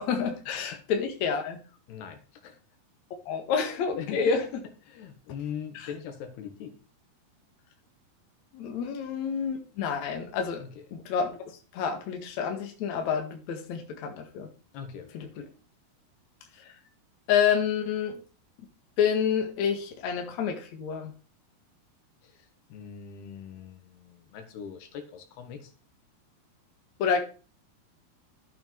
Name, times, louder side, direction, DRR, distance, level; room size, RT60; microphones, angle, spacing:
voice 1, 0.0-1.6 3.3-4.4 5.8-5.9 8.5-10.6 10.9-14.5 17.3-18.2 19.0-21.1 27.0-27.2, left 7 dB, 55° left, 2.7 m, -28 dB
voice 2, 1.9-2.6 4.0-4.4 4.9-6.8 10.6-10.9 14.7-15.5 22.2-25.7, left 8 dB, 85° left, 3.7 m, -41 dB
11.5 x 8.8 x 4.6 m
omnidirectional pair, 4.5 m